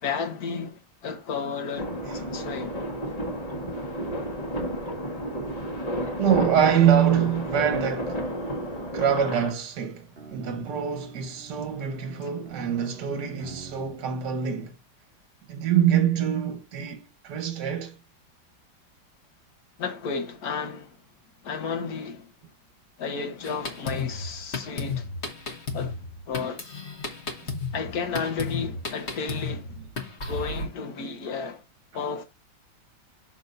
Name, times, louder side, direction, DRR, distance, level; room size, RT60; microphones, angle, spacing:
voice 1, 0.0-2.8 19.8-21.0 21.4-22.3 23.0-25.1 25.7-26.0 26.3-26.7 27.7-29.7 30.3-31.6 31.9-32.2, left 5 dB, 55° left, 1.6 m, -32 dB
sound 1, 1.8-9.5, equal, 20° left, 1.4 m, -31 dB
voice 2, 6.2-8.2 8.9-14.7 15.5-17.9 27.4-27.5, right 9 dB, 60° right, 1.6 m, -25 dB
sound 2, 10.1-14.0, right 4 dB, 35° right, 1.1 m, -46 dB
Drum kit, 23.4-30.7, left 4 dB, 40° left, 1.4 m, -33 dB
6.8 x 6.2 x 2.6 m
omnidirectional pair, 2.0 m